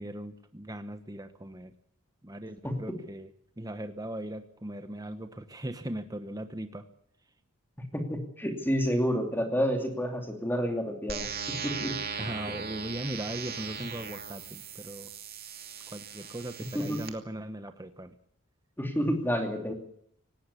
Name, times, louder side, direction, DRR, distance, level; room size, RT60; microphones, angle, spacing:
voice 1, 0.0-1.7 2.2-6.8 12.2-15.1 15.9-18.1, right 1 dB, 15° right, 9 dB, 1.1 m, -39 dB
voice 2, 7.9-12.0 16.7-17.0 18.8-19.7, equal, 10° left, 4 dB, 2.7 m, -29 dB
sound 1, 11.1-17.1, right 6 dB, 45° right, 2.6 m, -38 dB
18.0 x 17.5 x 8.4 m, 0.68 s
head